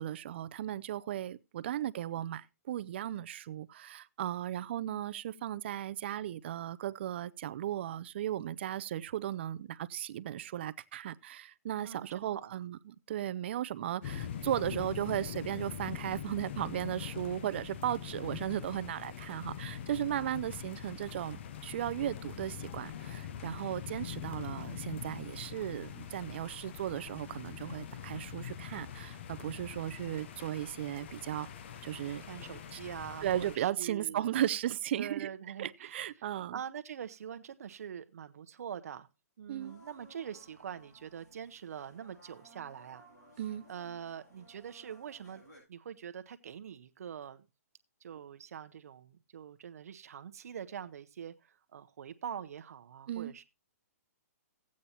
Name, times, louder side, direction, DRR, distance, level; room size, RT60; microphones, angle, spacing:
voice 1, 0.0-31.5 31.8-32.2 32.7-32.8 33.2-35.3 35.6-36.6 39.5-39.7 43.4-43.6 53.1-53.3, right 11 dB, 45° right, 0.4 m, -36 dB
voice 2, 11.8-12.6 32.2-34.4 35.0-36.3 36.5-39.1 39.4-43.0 43.7-45.4 45.7-47.5 48.0-53.4, right 8 dB, 65° right, 0.8 m, -44 dB
sound 1, 14.0-33.6, left 9 dB, 45° left, 0.7 m, -43 dB
sound 2, 39.6-45.6, right 1 dB, 90° left, 7.1 m, -59 dB
15.0 x 8.5 x 2.8 m
hypercardioid pair, 160°, 9 cm